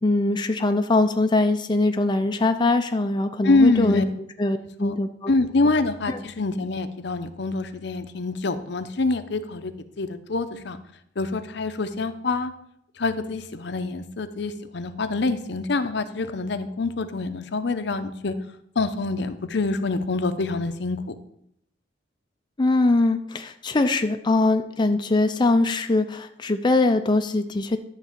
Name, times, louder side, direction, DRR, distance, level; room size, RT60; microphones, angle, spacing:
voice 1, 0.0-4.0 4.4-5.3 6.1-6.2 22.6-27.8, left 2 dB, 25° left, 6 dB, 0.5 m, -22 dB
voice 2, 3.4-4.0 4.8-4.9 5.3-9.7 10.0-10.8 11.2-12.5 13.0-18.3 18.8-21.2, left 3 dB, 65° left, 10 dB, 0.7 m, -25 dB
11.5 x 4.0 x 7.3 m, 0.72 s
head